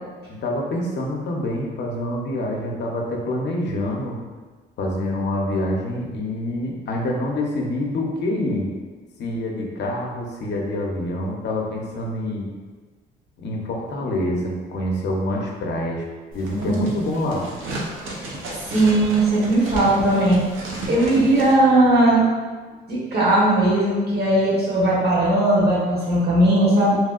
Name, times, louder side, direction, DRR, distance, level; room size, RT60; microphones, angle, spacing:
voice 1, 0.3-4.2 4.8-8.7 9.2-12.5 13.4-16.1 16.3-17.5, left 1 dB, 60° left, -1 dB, 0.6 m, -26 dB
sound 1, 16.3-21.5, right 1 dB, 85° right, 0.6 m, -33 dB
voice 2, 18.7-20.4 20.9-22.2 22.9-27.0, right 1 dB, 55° right, -6 dB, 1.2 m, -18 dB
3.0 x 2.7 x 2.4 m, 1.4 s
cardioid pair, 90°, 20 cm